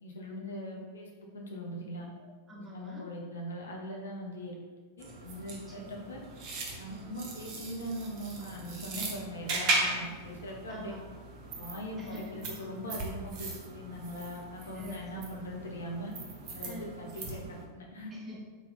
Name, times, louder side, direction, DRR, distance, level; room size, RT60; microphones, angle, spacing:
voice 1, 0.0-2.1 2.5-4.5 5.0-6.2 6.7-10.9 11.6-16.1 16.5-18.1, equal, 65° left, -1 dB, 0.7 m, -41 dB
voice 2, 2.1-3.0 5.7-5.8 6.9-7.2 10.7-11.0 12.0-12.3 14.7-15.0 16.6-16.9 18.1-18.4, equal, 20° right, -4 dB, 1.0 m, -45 dB
sound 1, 5.0-17.7, right 2 dB, 40° right, 0.8 m, -38 dB
3.4 x 3.0 x 3.6 m, 1.4 s
figure-of-eight pair, 90°, 0 cm